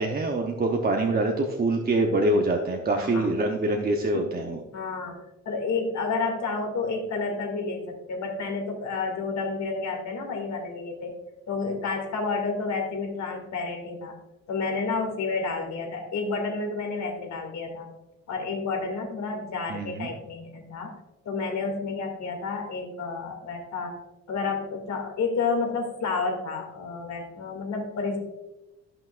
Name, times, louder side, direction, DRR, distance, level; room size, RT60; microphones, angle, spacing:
voice 1, 0.0-4.6 19.7-20.1, right 2 dB, 30° right, 2 dB, 0.9 m, -25 dB
voice 2, 2.9-3.4 4.1-4.3 4.7-11.1 11.5-14.1 14.5-17.9 18.3-20.9 21.3-24.0 24.3-28.2, left 4 dB, 65° left, 2 dB, 2.3 m, -30 dB
13.5 x 5.9 x 2.5 m, 1.0 s
cardioid pair, 90°, 30 cm